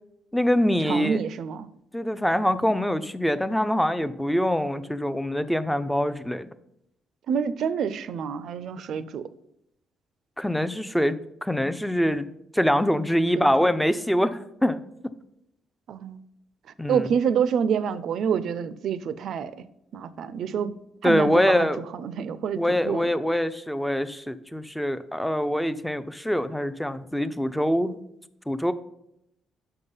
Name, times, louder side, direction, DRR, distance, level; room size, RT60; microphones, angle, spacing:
voice 1, 0.3-1.2 1.9-6.5 10.4-12.3 12.5-14.8 16.8-17.1 21.0-21.8 22.6-28.0 28.5-28.7, equal, 5° left, 0.4 m, -24 dB
voice 2, 0.9-1.7 7.3-9.3 13.3-13.7 15.9-16.2 16.9-19.5 19.9-20.8 21.0-21.7 22.0-23.1, right 7 dB, 70° right, 0.4 m, -27 dB
5.8 x 5.5 x 5.4 m
cardioid pair, 90°, 0 cm